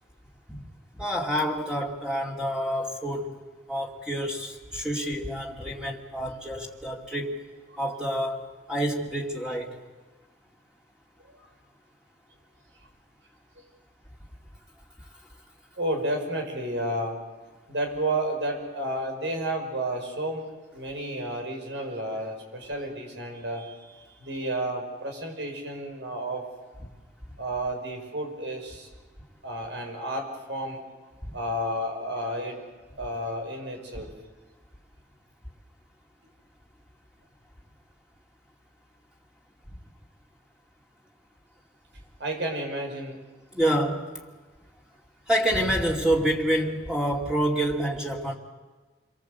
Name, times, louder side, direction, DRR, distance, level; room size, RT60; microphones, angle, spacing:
voice 1, 0.9-3.3 3.7-7.4 7.8-9.8 31.3-31.4 43.5-44.0 45.3-48.3, equal, 5° right, 2.6 m, -27 dB
voice 2, 15.8-17.2 17.7-20.4 20.7-26.4 27.4-28.9 29.4-30.8 31.3-32.6 33.0-34.1 42.2-43.2, right 1 dB, 75° right, 6.0 m, -31 dB
28.5 x 23.5 x 8.1 m
head